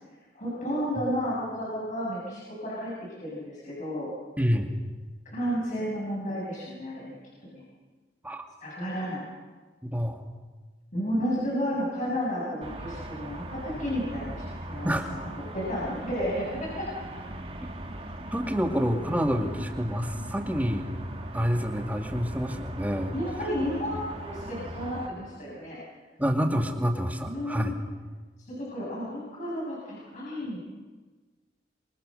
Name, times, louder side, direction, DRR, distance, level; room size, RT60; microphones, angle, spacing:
voice 1, 0.3-2.9 3.2-4.1 5.3-7.2 7.5-7.6 8.6-9.3 10.9-16.9 20.1-20.3 23.1-25.8 27.2-27.8 28.4-30.6, equal, 45° left, -6 dB, 7.9 m, -32 dB
voice 2, 4.4-4.7 8.2-8.4 9.8-10.2 14.8-15.1 18.3-20.9 21.3-23.1 26.2-27.7, equal, 10° right, 3 dB, 2.2 m, -27 dB
sound 1, 12.6-25.1, right 1 dB, 30° right, 2.5 m, -39 dB
27.0 x 25.5 x 6.5 m, 1.3 s
head